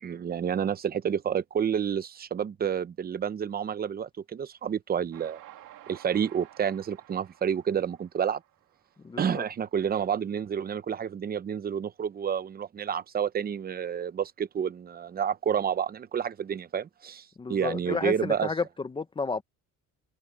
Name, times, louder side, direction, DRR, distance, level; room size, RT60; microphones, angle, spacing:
voice 1, 0.0-5.4 5.9-8.4 9.2-18.5, right 8 dB, 30° right, 0.7 m, -29 dB
Train, 5.1-9.5, right 13 dB, 75° right, 2.4 m, -52 dB
voice 2, 9.0-9.4 17.4-19.4, left 4 dB, 15° left, 0.6 m, -31 dB
cardioid pair, 165°, 33 cm